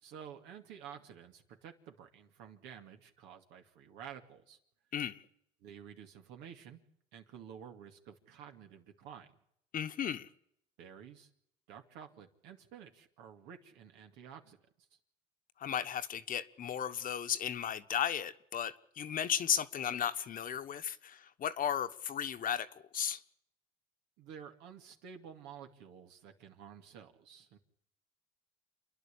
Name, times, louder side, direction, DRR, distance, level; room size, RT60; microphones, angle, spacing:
voice 1, 0.0-4.6 5.6-6.8 7.1-9.3 10.8-11.3 11.7-14.6 24.2-27.6, right 8 dB, 85° right, 2.4 m, -51 dB
voice 2, 4.9-5.2 9.7-10.3 15.6-22.7 22.9-23.2, left 9 dB, 50° left, 1.3 m, -35 dB
28.5 x 11.0 x 8.5 m
supercardioid pair, 85°, 18 cm